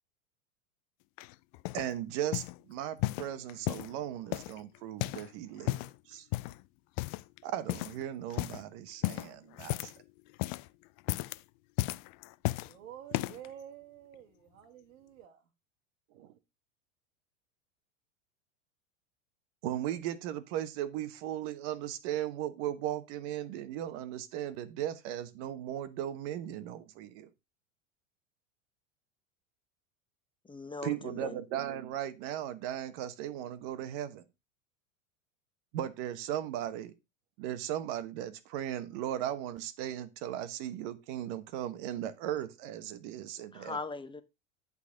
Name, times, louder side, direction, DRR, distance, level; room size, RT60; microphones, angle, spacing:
sound 1, 1.2-1.9 2.3-2.6 3.0-3.9 4.3-5.3 5.6-6.0 6.3-6.6 7.0-7.4 7.7-8.0 8.3-8.6 9.0-10.0 10.3-10.7 11.0-11.4 11.8-12.7 13.1-13.5 14.1-14.2, left 20 dB, 45° left, 0.5 m, -34 dB
voice 1, 1.7-5.8 6.1-6.3 7.4-9.9 16.1-16.3 19.6-27.3 30.8-34.2 35.7-36.9 37.4-43.8, right 11 dB, 60° right, 1.2 m, -37 dB
voice 2, 12.6-15.4, right 10 dB, 75° right, 1.5 m, -50 dB
voice 3, 30.5-31.4 43.5-44.2, left 3 dB, 10° left, 0.8 m, -40 dB
11.5 x 4.1 x 5.0 m
hypercardioid pair, 105°, 39 cm